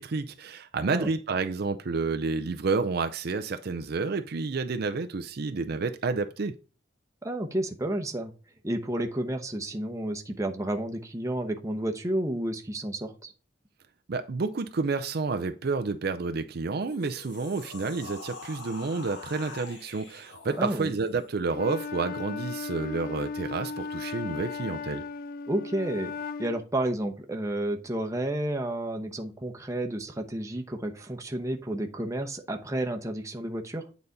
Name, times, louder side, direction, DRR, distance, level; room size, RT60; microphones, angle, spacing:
voice 1, 0.0-6.5 14.1-25.0, right 4 dB, 55° right, 0.5 m, -30 dB
voice 2, 7.2-8.3 8.6-13.3 20.6-20.9 25.5-26.1 26.4-33.8, right 1 dB, 15° right, 0.9 m, -31 dB
sound 1, 16.7-21.3, left 3 dB, 70° left, 2.2 m, -44 dB
Wind instrument woodwind instrument, 21.5-26.7, left 4 dB, 50° left, 0.4 m, -36 dB
8.7 x 4.1 x 3.9 m
head